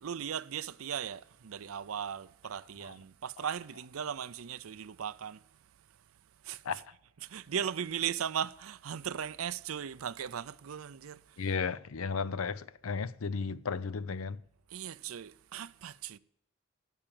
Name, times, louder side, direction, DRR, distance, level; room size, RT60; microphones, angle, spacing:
voice 1, 0.0-5.4 6.4-6.6 7.2-11.2 14.7-16.2, right 8 dB, 85° right, 0.5 m, -37 dB
voice 2, 11.4-14.4, left 5 dB, 85° left, 0.6 m, -34 dB
13.5 x 8.8 x 8.8 m
head